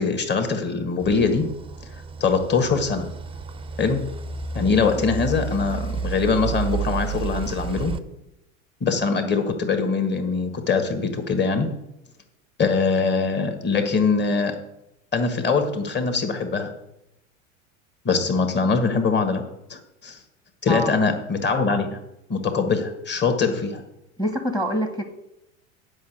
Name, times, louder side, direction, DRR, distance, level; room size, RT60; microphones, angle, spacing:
voice 1, 0.0-1.5 2.2-3.1 3.8-4.0 4.5-7.9 8.8-11.7 12.6-14.5 15.1-16.7 18.1-19.4 19.7-20.2 20.6-22.0 22.3-23.8, left 4 dB, 25° left, 6 dB, 1.7 m, -22 dB
sound 1, 1.0-8.0, right 5 dB, 15° right, 0.7 m, -31 dB
voice 2, 24.2-25.0, equal, 10° left, 7 dB, 1.2 m, -25 dB
8.4 x 5.7 x 8.0 m, 0.87 s
hypercardioid pair, 80°, 40 cm